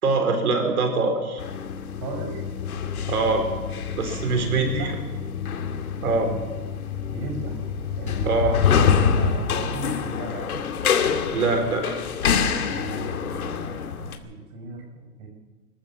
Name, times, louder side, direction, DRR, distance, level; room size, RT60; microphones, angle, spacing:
voice 1, 0.0-1.4 3.1-3.5 4.0-4.9 6.0-6.3 8.2-8.6 11.3-11.9, right 3 dB, 70° right, 6 dB, 4.1 m, -23 dB
sound 1, 1.4-14.2, left 7 dB, 70° left, 2.5 m, -26 dB
voice 2, 2.0-2.4 4.3-5.0 7.1-7.6 8.0-8.7 9.0-10.7 12.7-15.3, right 3 dB, 25° right, 2 dB, 5.4 m, -36 dB
26.0 x 14.0 x 7.3 m, 1.3 s
hypercardioid pair, 165°, 45 cm